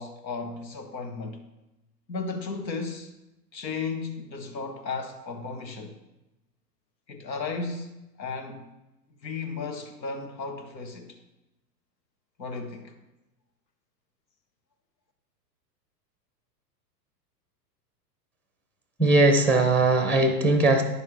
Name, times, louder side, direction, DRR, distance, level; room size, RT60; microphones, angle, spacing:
voice 1, 0.0-1.4 2.1-3.1 3.5-5.9 7.1-8.6 9.2-11.2 12.4-12.9, left 4 dB, 85° left, 4 dB, 1.4 m, -34 dB
voice 2, 19.0-20.8, right 2 dB, 5° left, 5 dB, 0.6 m, -20 dB
9.6 x 6.9 x 3.3 m, 0.96 s
hypercardioid pair, 110°, 50 cm